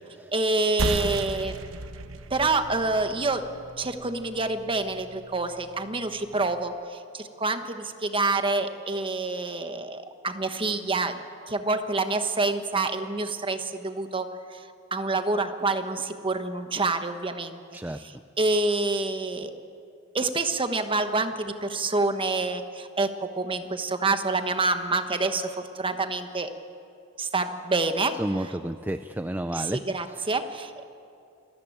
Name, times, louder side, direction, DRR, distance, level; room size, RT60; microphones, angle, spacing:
voice 1, 0.3-1.5 2.3-3.4 3.8-11.2 11.5-17.6 17.9-19.5 20.1-26.5 27.2-28.5 29.5-30.8, right 3 dB, 25° right, 8 dB, 1.2 m, -27 dB
sound 1, 0.8-5.9, right 2 dB, 80° right, 1.1 m, -35 dB
voice 2, 28.2-29.8, right 1 dB, 10° right, 10 dB, 0.4 m, -30 dB
26.5 x 13.5 x 8.8 m, 2.5 s
head